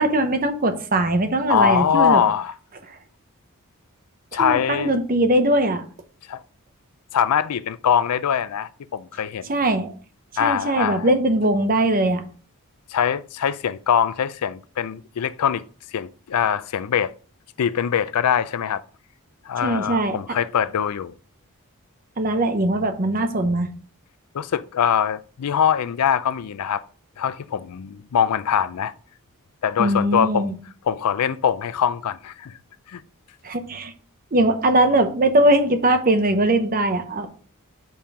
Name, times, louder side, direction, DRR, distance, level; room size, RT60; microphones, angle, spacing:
voice 1, 0.0-2.2 4.4-5.8 9.5-9.9 10.4-12.2 19.6-20.2 22.2-23.7 29.8-30.5 33.4-33.9 34.3-37.3, right 1 dB, 40° right, 0.9 m, -20 dB
voice 2, 1.5-2.5 4.3-5.0 6.3-6.4 7.1-9.6 10.4-11.1 12.9-15.6 15.9-17.1 17.6-18.8 19.5-21.1 24.3-26.8 27.2-28.9 29.6-30.5 30.9-32.6 32.9-33.0, left 8 dB, 90° left, 0.4 m, -22 dB
5.5 x 4.4 x 4.9 m
head